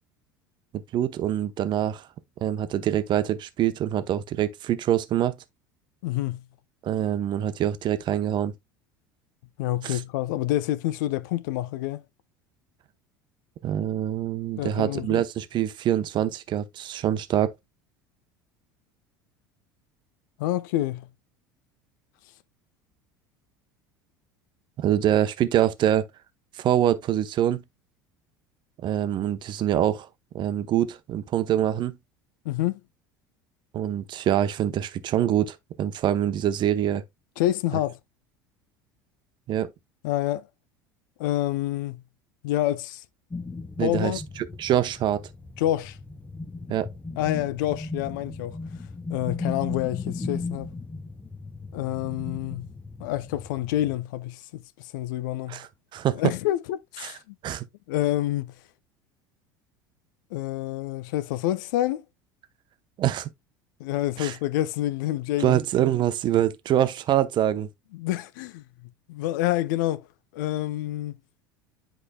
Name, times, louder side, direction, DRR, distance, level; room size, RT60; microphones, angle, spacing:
voice 1, 0.7-2.1 2.4-5.4 6.8-8.5 9.8-10.0 13.6-17.5 24.8-26.1 26.6-27.6 28.8-30.1 30.3-32.0 33.7-37.0 39.5-39.7 43.8-44.2 44.6-45.2 46.7-46.9 55.5-56.3 57.0-57.1 57.4-57.6 63.0-63.3 64.2-64.4 65.4-67.7, right 11 dB, 45° right, 0.8 m, -25 dB
voice 2, 6.0-6.4 9.6-12.0 14.6-15.2 20.4-21.1 32.4-32.8 37.4-38.0 40.0-40.5 41.2-42.0 42.4-43.0 43.8-44.2 45.6-46.0 47.2-48.6 49.1-50.7 51.7-52.7 53.0-55.6 56.2-57.3 57.9-58.5 60.3-62.0 63.8-65.6 67.9-68.6 69.1-70.1 70.3-71.2, left 14 dB, 65° left, 0.6 m, -27 dB
sound 1, 43.3-53.9, left 3 dB, 15° left, 1.0 m, -37 dB
9.8 x 5.0 x 2.2 m
figure-of-eight pair, 70°, 11 cm